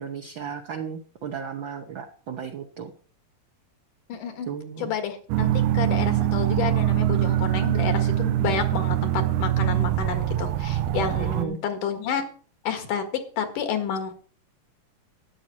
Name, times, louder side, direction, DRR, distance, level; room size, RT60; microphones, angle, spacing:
voice 1, 0.0-2.9 4.5-4.9 11.2-11.6, right 7 dB, 60° right, 3 dB, 1.3 m, -34 dB
voice 2, 4.1-4.5 4.8-12.2 12.6-14.1, left 7 dB, 75° left, 7 dB, 3.2 m, -30 dB
sound 1, 5.3-11.5, right 12 dB, 80° right, 2.0 m, -23 dB
12.5 x 9.8 x 4.3 m, 0.41 s
omnidirectional pair, 3.8 m